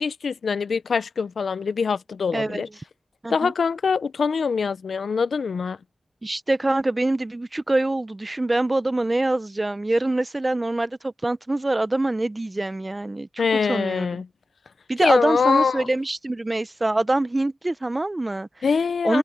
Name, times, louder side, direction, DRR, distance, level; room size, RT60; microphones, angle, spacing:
voice 1, 0.0-2.7 3.3-5.8 13.4-14.3 15.0-15.9 18.6-19.2, left 5 dB, 85° left, 0.6 m, -23 dB
voice 2, 2.3-2.6 3.2-3.5 6.2-14.2 14.9-18.5 19.0-19.2, right 2 dB, 25° right, 0.8 m, -24 dB
cardioid pair, 60°, 0 cm